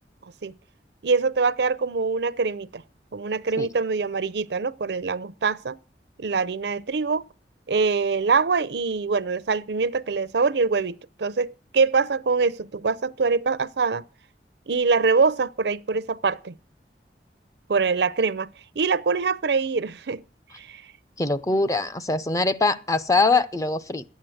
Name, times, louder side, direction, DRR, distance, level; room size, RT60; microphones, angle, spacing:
voice 1, 1.0-2.8 3.1-5.8 6.2-7.2 7.7-14.0 14.7-16.5 17.7-18.5 18.8-20.2 20.6-20.8, right 4 dB, 70° right, 0.6 m, -24 dB
voice 2, 21.2-24.0, left 3 dB, 20° left, 0.6 m, -23 dB
12.0 x 9.2 x 7.8 m
head